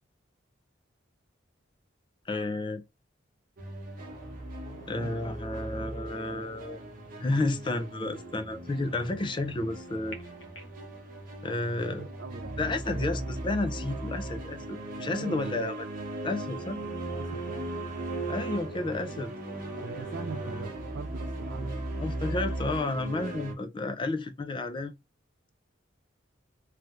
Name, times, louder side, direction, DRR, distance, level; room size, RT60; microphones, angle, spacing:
voice 1, 2.3-2.8 4.9-6.9 7.2-10.2 11.4-12.1 12.6-15.9 16.2-16.8 18.3-19.3 22.0-24.9, left 2 dB, 25° left, 0.4 m, -31 dB
sound 1, 3.6-23.5, right 2 dB, 45° right, 0.9 m, -37 dB
sound 2, 4.0-10.8, left 1 dB, 80° left, 1.0 m, -52 dB
voice 2, 4.7-5.3 12.0-13.4 15.1-15.7 16.8-17.7 19.7-22.3, right 5 dB, 75° right, 0.4 m, -43 dB
3.2 x 3.0 x 2.4 m
head